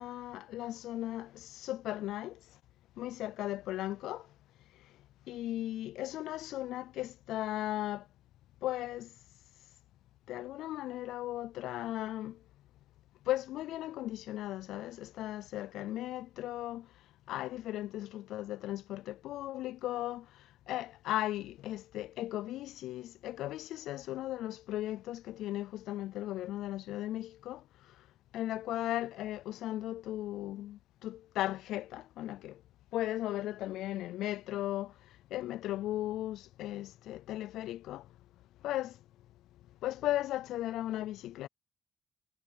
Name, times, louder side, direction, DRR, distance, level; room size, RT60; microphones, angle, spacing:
voice 1, 0.0-2.4 3.0-4.3 5.3-8.0 8.6-9.1 10.3-12.4 13.3-16.9 17.3-20.3 20.7-27.6 28.3-32.6 32.9-34.9 35.3-38.0 38.6-39.0 39.8-41.5, left 14 dB, 85° left, 0.3 m, -36 dB
cardioid pair, 90°, 0 cm